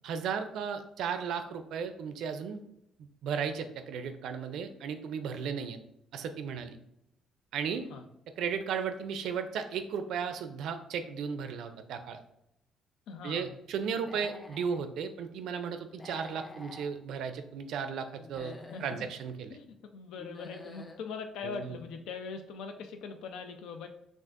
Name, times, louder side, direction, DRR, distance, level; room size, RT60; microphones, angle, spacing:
voice 1, 0.0-2.6 3.2-5.8 6.1-6.8 7.5-7.9 8.4-12.2 13.2-18.5 18.8-19.5 21.4-21.8, right 6 dB, 70° right, 8 dB, 0.4 m, -35 dB
voice 2, 13.1-13.6 18.4-18.8 19.5-19.6 19.9-23.9, left 5 dB, 90° left, 6 dB, 0.5 m, -41 dB
Human voice / Animal, 13.9-14.8 15.9-16.9 18.2-19.0 20.2-21.0, left 2 dB, 15° left, 0.5 m, -48 dB
6.0 x 2.5 x 2.5 m, 0.80 s
cardioid pair, 160°, 0 cm